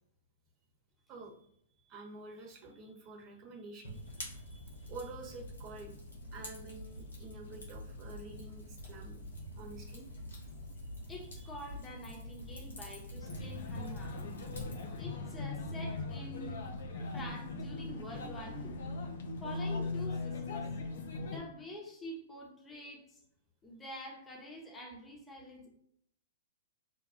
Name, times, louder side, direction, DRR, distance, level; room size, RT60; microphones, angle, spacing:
voice 1, 1.8-6.0 6.3-9.2 9.6-10.0 11.4-11.6, right 3 dB, 30° right, 0 dB, 1.1 m, -49 dB
Fire, 3.8-15.0, left 1 dB, 85° left, 1.2 m, -47 dB
voice 2, 11.1-14.2 14.9-16.6 17.1-18.8 19.4-20.7 21.2-23.2 23.6-25.7, left 1 dB, 15° left, -1 dB, 1.1 m, -47 dB
sound 1, 13.2-21.4, left 3 dB, 70° left, 0.7 m, -39 dB
5.3 x 2.3 x 2.6 m, 0.68 s
hypercardioid pair, 120°, 0 cm